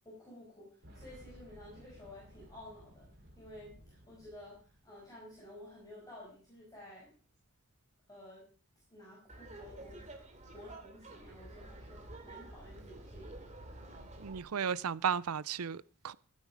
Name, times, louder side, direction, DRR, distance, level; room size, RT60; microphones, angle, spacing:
voice 1, 0.0-3.1 3.4-7.2 8.1-8.5 8.9-10.1 10.5-13.5, left 1 dB, 15° left, 5.8 m, -52 dB
Boom, 0.8-5.6 5.8-5.9 7.0-7.1, equal, 55° right, 6.1 m, -57 dB
Laughter, 9.3-14.4, right 2 dB, 35° right, 2.6 m, -50 dB
voice 2, 14.2-16.1, right 7 dB, 90° right, 0.6 m, -34 dB
16.0 x 9.5 x 5.0 m
head